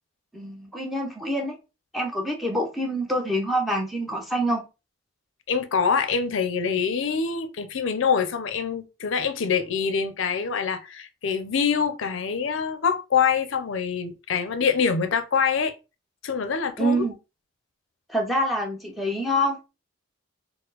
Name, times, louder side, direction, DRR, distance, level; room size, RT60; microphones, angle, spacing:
voice 1, 0.3-1.6 1.9-4.6 16.8-17.1 18.1-19.6, equal, ahead, 0.6 m, -26 dB
voice 2, 5.5-15.7 16.2-17.1, left 6 dB, 65° left, 0.5 m, -25 dB
4.3 x 2.0 x 3.9 m
head